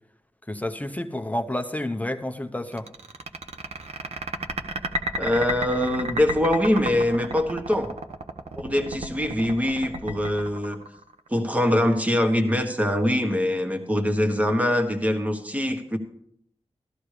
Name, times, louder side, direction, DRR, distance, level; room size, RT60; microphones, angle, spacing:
voice 1, 0.5-2.9, left 1 dB, 15° left, 7 dB, 0.6 m, -30 dB
sound 1, 2.7-11.4, right 1 dB, 85° right, 1.0 m, -32 dB
voice 2, 5.2-7.9 8.6-10.8 11.3-16.0, left 1 dB, 15° right, 6 dB, 1.3 m, -23 dB
14.0 x 13.5 x 3.3 m, 0.69 s
wide cardioid pair, 85°, 11 cm